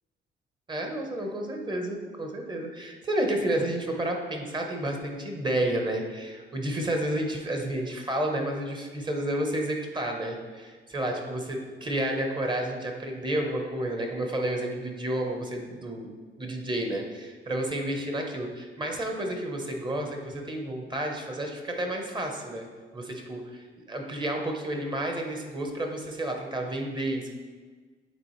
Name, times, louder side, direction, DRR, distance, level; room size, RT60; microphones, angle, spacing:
voice 1, 0.7-16.1 16.4-22.7 22.9-27.3, right 1 dB, 25° right, 2 dB, 0.9 m, -31 dB
8.4 x 3.6 x 3.1 m, 1.4 s
cardioid pair, 110°, 20 cm